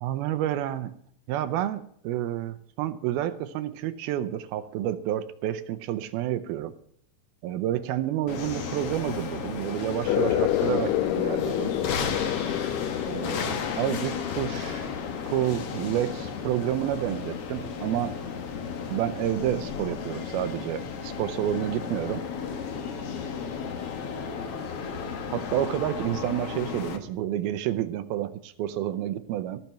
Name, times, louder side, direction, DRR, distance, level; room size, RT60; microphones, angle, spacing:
voice 1, 0.0-0.9 1.3-6.7 7.4-11.7 13.1-14.9 15.2-18.2 18.9-22.2 25.3-29.6, right 12 dB, 75° right, 12 dB, 2.5 m, -29 dB
sound 1, 8.3-27.0, left 6 dB, 60° left, 1.5 m, -34 dB
sound 2, 10.0-17.2, left 13 dB, 85° left, 2.8 m, -30 dB
17.0 x 5.9 x 8.9 m, 0.63 s
omnidirectional pair, 4.7 m